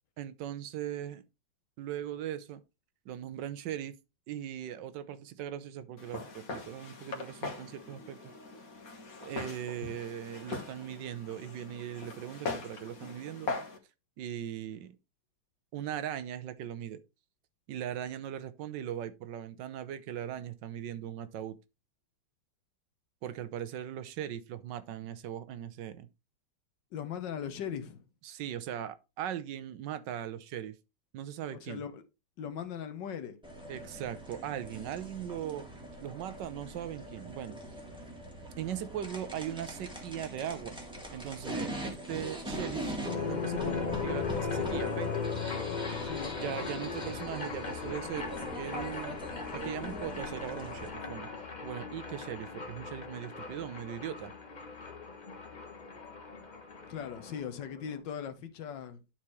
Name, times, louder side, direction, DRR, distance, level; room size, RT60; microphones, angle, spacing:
voice 1, 0.2-1.2 1.8-2.6 3.0-4.0 4.3-8.3 9.2-13.5 14.2-15.0 15.7-17.0 17.7-21.6 23.2-26.1 28.2-30.8 31.1-31.8 33.7-35.7 36.0-37.6 38.6-40.8 41.1-45.1 46.4-49.2 49.5-54.3, right 10 dB, 75° right, 1.3 m, -39 dB
Walk footsteps, 6.0-13.8, left 3 dB, 50° left, 1.8 m, -41 dB
voice 2, 26.9-28.0 31.6-32.0 32.4-33.4 46.0-46.4 56.9-59.0, left 8 dB, 75° left, 1.6 m, -39 dB
sound 1, 33.4-50.9, right 1 dB, 5° right, 1.5 m, -42 dB
sound 2, 43.0-58.0, left 5 dB, 30° left, 0.9 m, -38 dB
11.0 x 4.4 x 3.1 m
omnidirectional pair, 2.0 m